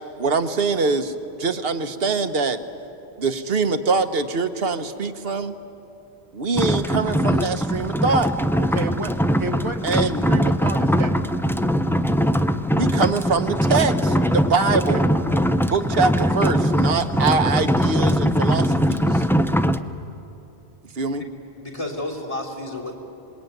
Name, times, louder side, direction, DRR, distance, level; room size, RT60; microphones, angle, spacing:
voice 1, 0.2-1.1 1.4-2.6 3.2-5.6 6.3-8.3 9.8-10.2 12.8-15.0 15.7-19.2 21.0-21.2, right 4 dB, 65° right, 9 dB, 1.3 m, -23 dB
sound 1, 6.6-19.8, equal, 5° left, 0.4 m, -21 dB
voice 2, 8.6-9.1 9.4-9.8 10.3-11.1 14.7-15.0, right 4 dB, 30° right, 5 dB, 1.2 m, -30 dB
voice 3, 21.6-22.9, left 1 dB, 35° left, 2 dB, 3.3 m, -31 dB
26.5 x 21.0 x 9.3 m, 2.9 s
omnidirectional pair, 1.1 m